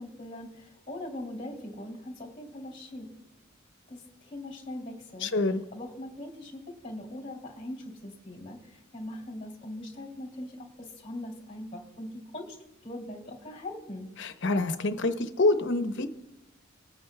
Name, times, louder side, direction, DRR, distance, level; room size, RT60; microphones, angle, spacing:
voice 1, 0.0-3.4 3.9-12.6 12.8-14.1, left 1 dB, 25° left, -1 dB, 2.6 m, -41 dB
voice 2, 5.2-5.6 14.2-16.1, left 2 dB, 65° left, 8 dB, 0.8 m, -26 dB
20.5 x 9.2 x 2.2 m, 0.95 s
head